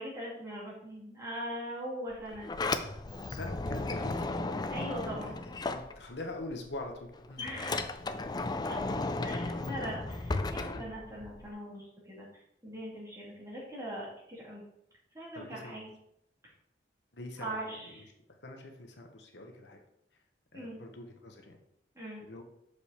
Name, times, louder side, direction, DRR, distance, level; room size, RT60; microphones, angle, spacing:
voice 1, 0.0-2.5 4.7-5.4 7.4-8.0 8.6-8.8 9.2-14.6 15.1-15.9 17.4-18.1 20.5-20.8 21.9-22.2, equal, 20° right, -6 dB, 2.9 m, -41 dB
Sliding door, 2.1-6.4 6.8-11.5, left 2 dB, 25° left, 0.4 m, -35 dB
voice 2, 3.3-7.4 9.8-9.9 15.3-15.9 17.1-18.0 18.4-19.8 20.5-21.6 22.2-22.4, left 2 dB, 70° left, 3 dB, 1.1 m, -44 dB
6.6 x 5.2 x 4.3 m, 0.75 s
head